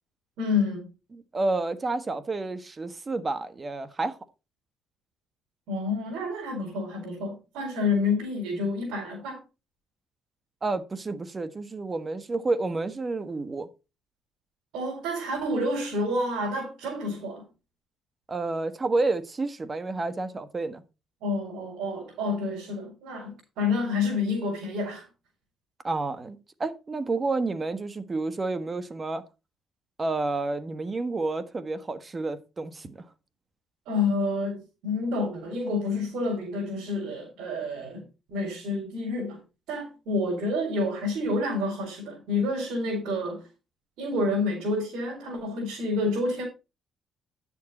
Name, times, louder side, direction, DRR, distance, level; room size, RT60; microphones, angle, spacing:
voice 1, 0.4-0.9 5.7-9.4 14.7-17.4 21.2-25.1 33.9-39.4 39.7-43.5 44.0-46.4, left 2 dB, 85° right, 4.5 m, -29 dB
voice 2, 1.1-4.2 10.6-13.7 18.3-20.8 25.8-29.2 30.0-33.1, right 3 dB, 30° right, 1.3 m, -30 dB
10.5 x 7.4 x 4.2 m
cardioid pair, 85°, 0 cm